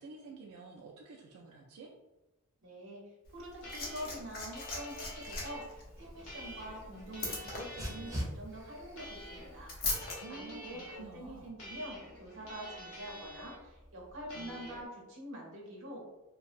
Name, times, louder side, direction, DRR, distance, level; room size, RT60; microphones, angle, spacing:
voice 1, 0.0-1.9 10.2-11.5, right 3 dB, 90° right, -1 dB, 0.3 m, -50 dB
voice 2, 2.6-16.1, right 1 dB, 60° right, -2 dB, 0.7 m, -46 dB
Liquid, 3.3-10.2 11.2-11.4, left 2 dB, 45° left, 0.6 m, -41 dB
sound 1, 3.6-5.7 6.3-8.2 9.0-9.6 9.8-11.0 11.6-13.6 14.3-14.9, left 1 dB, 75° left, 0.8 m, -48 dB
Dog, 5.7-14.8, equal, 15° right, 0.4 m, -48 dB
2.6 x 2.0 x 2.4 m, 1.0 s
head